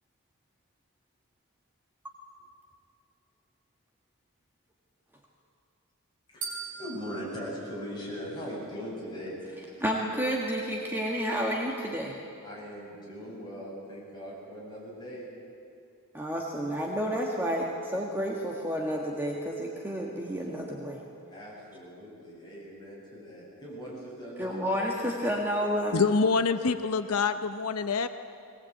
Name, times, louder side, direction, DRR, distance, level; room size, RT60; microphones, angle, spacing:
voice 1, 6.3-9.4 12.4-15.3 21.3-24.6, equal, 20° left, -5 dB, 7.5 m, -40 dB
sound 1, 6.4-8.7, right 5 dB, 40° right, 3.8 m, -42 dB
voice 2, 9.8-12.2 16.1-21.0 24.4-26.0, equal, 10° right, -2 dB, 1.8 m, -30 dB
voice 3, 25.9-28.1, left 4 dB, 85° left, 10 dB, 0.7 m, -26 dB
21.0 x 19.0 x 8.6 m, 2.5 s
head